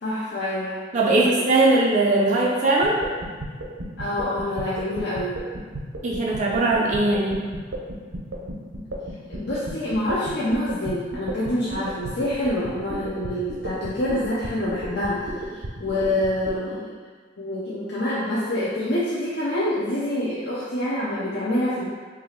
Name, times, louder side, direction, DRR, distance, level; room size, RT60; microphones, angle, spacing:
voice 1, 0.0-0.8 1.1-1.3 4.0-5.3 9.3-16.9 17.4-21.9, left 1 dB, 55° left, -8 dB, 0.5 m, -26 dB
voice 2, 0.9-3.0 6.0-7.5, right 2 dB, 40° right, -4 dB, 0.4 m, -20 dB
sound 1, 2.8-16.6, right 1 dB, 80° right, 0.7 m, -33 dB
2.8 x 2.6 x 4.2 m, 1.5 s
head